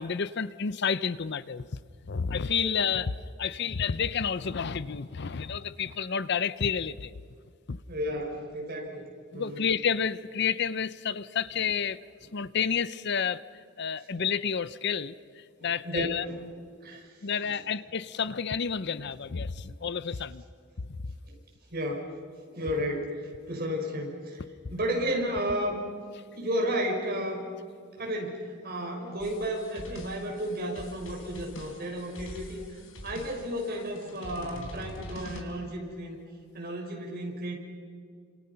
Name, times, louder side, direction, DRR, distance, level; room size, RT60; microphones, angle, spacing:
voice 1, 0.0-1.7 2.1-3.1 3.4-7.1 7.7-7.8 9.3-12.0 12.3-13.4 13.8-15.1 15.6-16.3 17.2-20.4, left 6 dB, 55° left, 16 dB, 0.6 m, -30 dB
voice 2, 7.9-9.0 9.3-9.6 15.6-16.4 16.8-17.1 17.4-17.6 19.6-19.7 21.3-21.4 21.7-22.1 22.5-24.4 24.7-25.9 26.4-27.4 28.0-36.2 36.5-37.6, equal, 50° right, 0 dB, 5.8 m, -33 dB
sound 1, 29.2-35.4, left 1 dB, 80° left, 3.8 m, -44 dB
29.5 x 26.5 x 5.7 m, 2.1 s
head